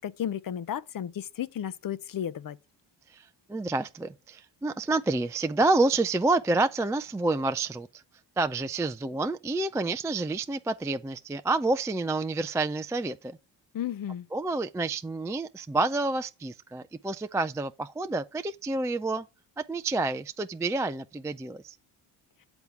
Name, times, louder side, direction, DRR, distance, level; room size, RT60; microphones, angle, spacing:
voice 1, 0.0-2.6 13.7-14.3, left 10 dB, 45° left, 0.7 m, -33 dB
voice 2, 3.1-8.0 8.4-13.4 14.3-19.3 19.6-21.8, right 3 dB, 5° right, 0.3 m, -28 dB
8.0 x 3.6 x 5.7 m
supercardioid pair, 60°, 49 cm